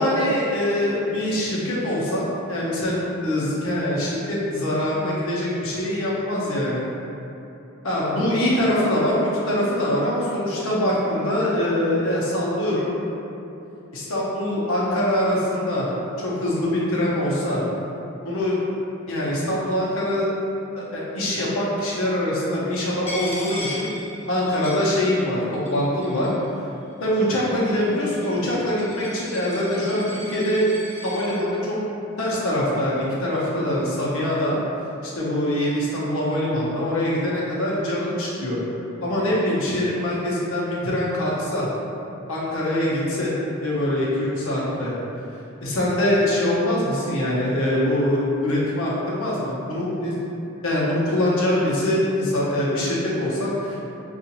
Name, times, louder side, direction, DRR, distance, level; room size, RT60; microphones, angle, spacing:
voice 1, 0.0-6.8 7.8-9.2 9.5-12.9 13.9-15.9 16.2-17.6 18.2-18.6 19.1-20.3 20.8-23.9 24.3-26.3 27.0-30.7 31.0-31.8 32.2-34.6 35.0-38.6 39.0-41.7 42.3-43.3 43.6-44.9 45.6-50.1 50.6-53.8, left 1 dB, 70° left, -6 dB, 0.8 m, -23 dB
Coin (dropping), 23.1-25.4 25.7-26.5 27.2-31.4, left 1 dB, 30° left, 0.6 m, -37 dB
3.8 x 2.4 x 2.9 m, 2.9 s
head